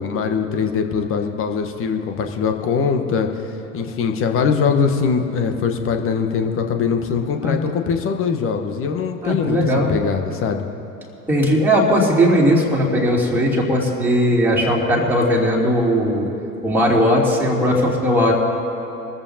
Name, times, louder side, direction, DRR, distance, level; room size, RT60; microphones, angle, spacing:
voice 1, 0.0-3.3 3.7-10.7, left 6 dB, 30° left, 5 dB, 1.3 m, -22 dB
voice 2, 9.2-9.9 11.3-16.3 16.6-18.3, equal, 5° right, -4 dB, 3.1 m, -18 dB
26.5 x 14.0 x 2.9 m, 3.0 s
figure-of-eight pair, 85°, 46 cm